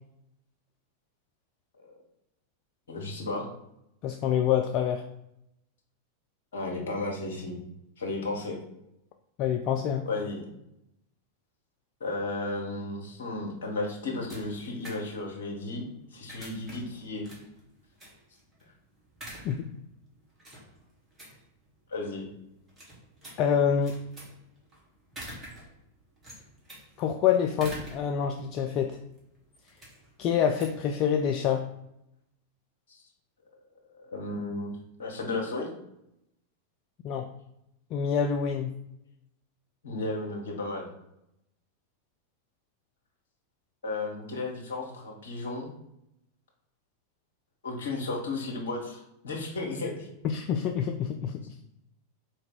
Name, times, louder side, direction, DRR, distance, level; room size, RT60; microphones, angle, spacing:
voice 1, 2.9-3.5 6.5-7.6 8.0-8.6 10.0-10.4 12.0-17.2 21.9-22.3 32.9-33.0 34.0-34.7 35.0-35.7 39.8-40.9 43.8-45.7 47.6-50.1, left 2 dB, 60° left, -1 dB, 1.2 m, -34 dB
voice 2, 4.0-5.0 9.4-10.0 19.4-19.6 23.4-23.9 27.0-29.0 30.2-31.7 37.0-37.3 37.9-38.7 50.2-51.5, left 8 dB, 40° left, 4 dB, 0.3 m, -26 dB
sound 1, 13.6-31.6, right 1 dB, 10° right, 1.4 m, -49 dB
4.5 x 2.6 x 3.8 m, 0.81 s
figure-of-eight pair, 90°, 0 cm